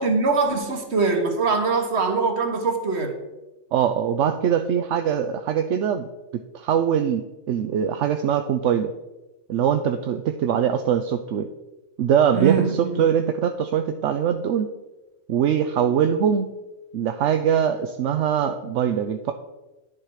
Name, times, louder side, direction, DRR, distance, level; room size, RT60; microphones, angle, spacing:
voice 1, 0.0-3.2 12.3-13.0, right 4 dB, 65° right, 1.6 m, -22 dB
voice 2, 3.7-6.1 6.5-8.9 9.5-11.5 12.0-14.7 15.3-16.5 16.9-19.3, right 8 dB, 80° right, 1.0 m, -22 dB
10.5 x 7.4 x 4.8 m
omnidirectional pair, 1.2 m